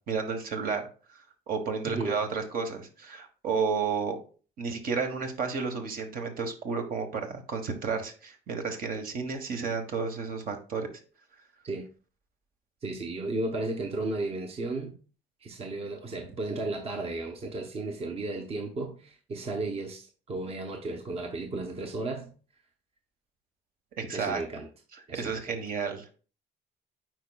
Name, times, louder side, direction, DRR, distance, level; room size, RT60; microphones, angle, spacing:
voice 1, 0.1-4.2 4.6-10.9 24.0-24.4 25.1-26.1, right 5 dB, 60° right, 1.3 m, -32 dB
voice 2, 1.8-2.2 11.6-11.9 12.8-15.0 15.4-22.3 24.1-24.7 25.1-25.5, right 2 dB, 35° right, 0.9 m, -34 dB
9.1 x 4.6 x 2.3 m
cardioid pair, 110°, 17 cm